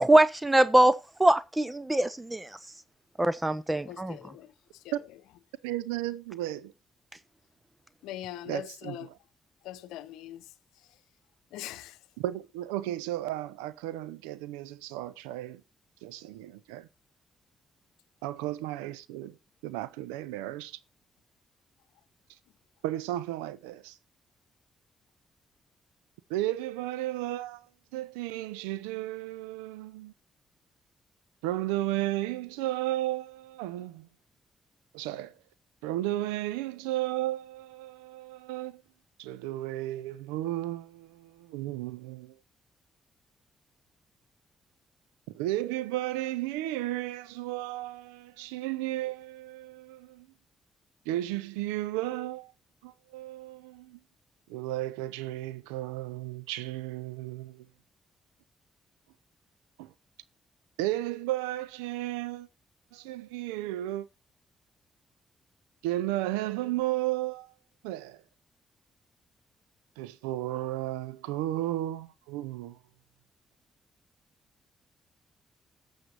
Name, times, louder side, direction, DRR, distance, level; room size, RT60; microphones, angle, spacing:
voice 1, 0.0-2.5 3.2-4.2, right 1 dB, 15° right, 0.8 m, -23 dB
voice 2, 3.9-4.5 4.8-4.9 8.0-9.1 9.6-10.4 11.5-12.0, left 13 dB, 80° left, 0.8 m, -41 dB
voice 3, 5.6-6.7 8.5-9.1 12.2-15.6 16.0-16.9 18.2-19.4 19.6-20.8 22.8-24.0 26.3-27.6 27.9-30.1 31.4-34.1 34.9-35.3 35.8-38.8 39.2-42.3 45.3-50.3 51.1-52.5 52.8-54.0 54.5-57.7 59.8-59.9 60.8-62.5 62.9-64.1 65.8-67.5 67.8-68.2 70.0-72.8, right 15 dB, 85° right, 0.6 m, -34 dB
18.0 x 6.7 x 2.9 m
hypercardioid pair, 45°, 0 cm